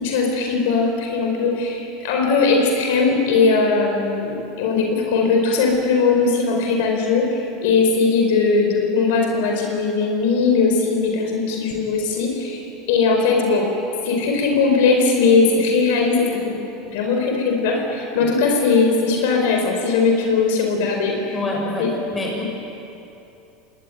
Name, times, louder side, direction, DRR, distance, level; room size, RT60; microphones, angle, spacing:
voice 1, 0.0-12.6 12.9-13.7 14.0-16.5 16.9-21.4 21.8-21.9 22.4-22.5, left 4 dB, 80° left, 2 dB, 4.5 m, -19 dB
voice 2, 21.3-22.4, left 1 dB, 20° left, -2 dB, 7.7 m, -26 dB
25.0 x 19.5 x 9.2 m, 2.9 s
supercardioid pair, 130°, 0 cm